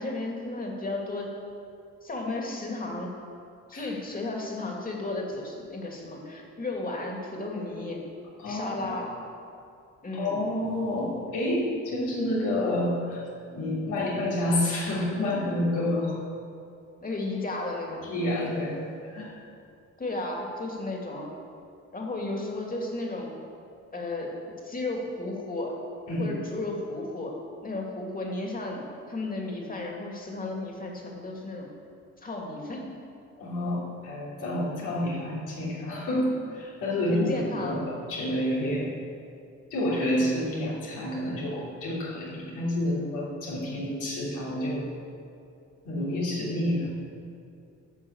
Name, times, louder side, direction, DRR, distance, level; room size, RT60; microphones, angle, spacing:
voice 1, 0.0-1.3 2.0-3.1 3.7-8.0 8.4-9.1 10.0-10.4 17.0-18.0 20.0-21.3 21.9-23.3 23.9-24.3 24.6-25.7 26.2-27.3 27.6-28.8 29.1-31.7 32.2-32.9 37.1-37.8, left 2 dB, 30° left, -1 dB, 2.5 m, -33 dB
voice 2, 8.4-9.1 10.1-13.3 13.5-16.1 18.0-19.3 26.1-26.5 33.4-38.9 39.7-44.9 45.8-46.9, left 1 dB, 85° left, -5 dB, 3.1 m, -29 dB
10.5 x 6.0 x 8.1 m, 2.5 s
cardioid pair, 90°, 30 cm